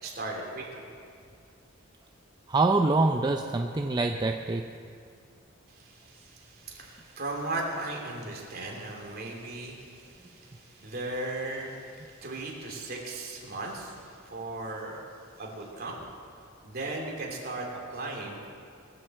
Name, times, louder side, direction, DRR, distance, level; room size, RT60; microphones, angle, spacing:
voice 1, 0.0-0.9 5.7-15.0 15.4-16.0 16.6-18.5, right 2 dB, 50° right, -1 dB, 2.9 m, -37 dB
voice 2, 2.5-4.7, right 3 dB, 20° right, 4 dB, 0.5 m, -25 dB
20.5 x 7.7 x 7.6 m, 2.3 s
head